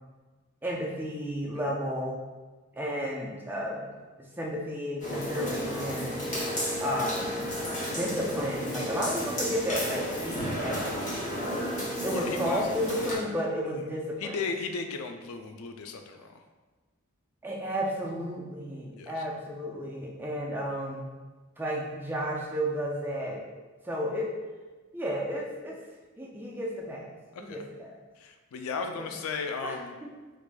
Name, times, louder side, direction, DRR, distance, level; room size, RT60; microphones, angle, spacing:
voice 1, 0.6-2.2 2.8-3.9 4.4-6.2 6.8-7.4 7.9-11.0 11.4-11.7 12.0-14.4 17.4-21.0 21.6-23.4 23.8-24.3 24.9-25.8 26.2-27.1 27.4-27.9 29.0-29.1 29.6-29.8 30.0-30.1, equal, 10° right, -2 dB, 0.3 m, -32 dB
sound 1, 5.0-13.2, equal, 35° left, 0.9 m, -32 dB
voice 2, 12.1-12.7 13.6-13.9 14.2-16.4 18.9-19.2 27.3-27.6 28.2-30.0, left 4 dB, 80° left, 6 dB, 0.3 m, -36 dB
4.5 x 2.5 x 2.2 m, 1.3 s
head